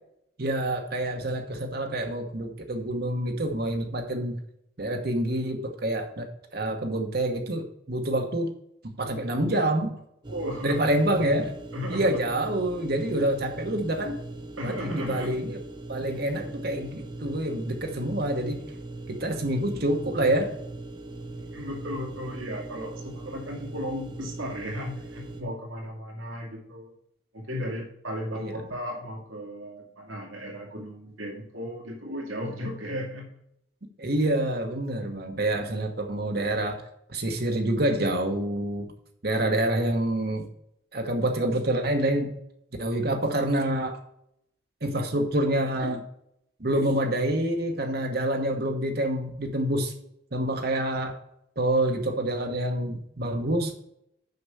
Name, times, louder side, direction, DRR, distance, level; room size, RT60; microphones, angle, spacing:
voice 1, 0.4-4.4 4.8-6.3 6.5-8.5 8.8-9.9 10.6-11.5 11.9-14.2 14.6-15.6 15.9-18.7 19.1-20.5 28.4-28.5 34.0-36.8 37.1-38.9 39.2-40.5 40.9-42.4 42.8-44.0 44.8-46.0 46.6-49.9 50.3-51.1 51.6-53.7, right 1 dB, 50° right, 3 dB, 1.1 m, -27 dB
sound 1, 10.2-25.4, right 2 dB, 20° right, 1.0 m, -40 dB
voice 2, 10.3-10.9 11.7-12.2 14.6-15.4 21.1-27.0 27.3-33.3, equal, 85° right, -1 dB, 2.4 m, -35 dB
6.7 x 6.0 x 6.8 m, 0.75 s
head